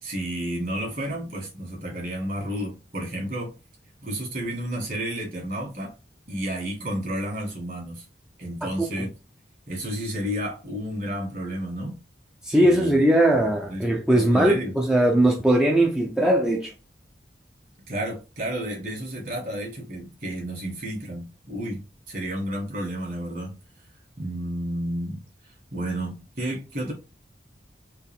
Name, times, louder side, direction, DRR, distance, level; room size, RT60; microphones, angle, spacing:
voice 1, 0.0-3.5 4.0-5.9 6.3-8.1 8.4-9.1 9.7-12.0 12.6-13.0 13.3-13.4 13.7-14.8 17.9-23.6 24.2-25.2 25.7-26.9, right 1 dB, 50° right, 1.9 m, -31 dB
voice 2, 12.4-16.7, right 1 dB, 5° right, 0.4 m, -20 dB
4.4 x 2.4 x 3.5 m
head